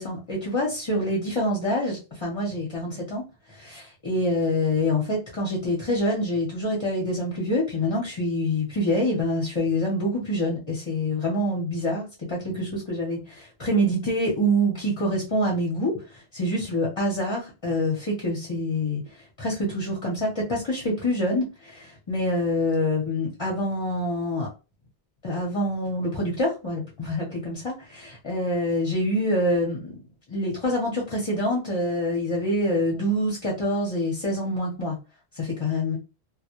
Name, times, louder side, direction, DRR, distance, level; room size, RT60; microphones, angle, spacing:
voice 1, 0.0-3.2 3.5-24.5 25.2-30.0 30.3-35.0 35.3-36.0, left 1 dB, 30° left, -3 dB, 0.6 m, -26 dB
2.1 x 2.1 x 2.8 m, 0.30 s
omnidirectional pair, 1.1 m